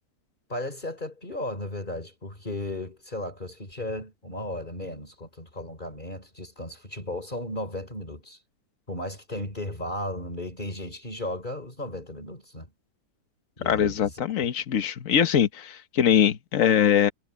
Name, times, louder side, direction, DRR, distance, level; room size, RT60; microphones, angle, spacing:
voice 1, 0.5-8.4 8.9-12.7 13.6-14.1, left 1 dB, 30° left, 3.6 m, -35 dB
voice 2, 13.6-17.1, left 9 dB, 55° left, 1.5 m, -22 dB
omnidirectional pair, 1.8 m